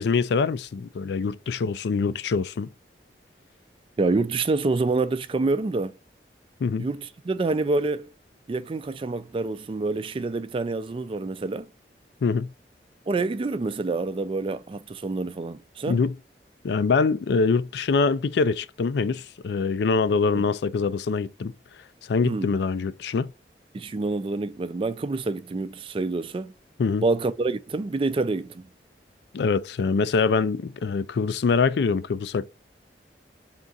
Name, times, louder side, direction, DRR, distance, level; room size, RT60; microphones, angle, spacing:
voice 1, 0.0-2.7 6.6-6.9 12.2-12.5 15.9-16.1 16.6-21.5 22.1-23.3 26.8-27.0 29.3-32.5, left 4 dB, 65° left, 0.4 m, -24 dB
voice 2, 4.0-5.9 6.8-8.1 8.5-11.7 13.1-16.0 20.3-20.4 22.2-22.5 23.7-26.5 27.0-28.7, right 3 dB, 30° right, 0.3 m, -27 dB
3.7 x 2.4 x 3.9 m
head